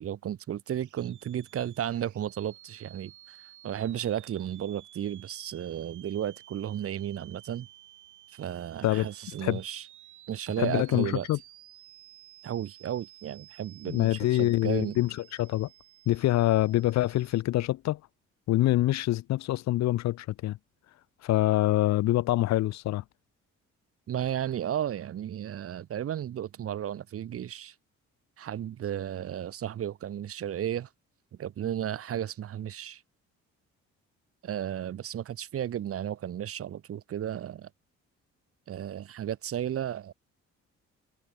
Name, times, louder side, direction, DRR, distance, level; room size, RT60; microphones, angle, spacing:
voice 1, 0.0-3.4 3.6-7.7 8.3-9.8 10.3-11.3 12.4-15.0 24.1-27.7 28.4-30.9 31.4-33.0 34.4-37.7 38.7-40.1, right 10 dB, 50° right, 0.7 m, -34 dB
sound 1, 0.7-17.4, right 13 dB, 75° right, 1.8 m, -54 dB
voice 2, 10.6-11.4 13.9-15.7 16.1-18.0 18.5-20.6 21.2-23.0, left 15 dB, 65° left, 0.5 m, -25 dB
cardioid pair, 90°, 30 cm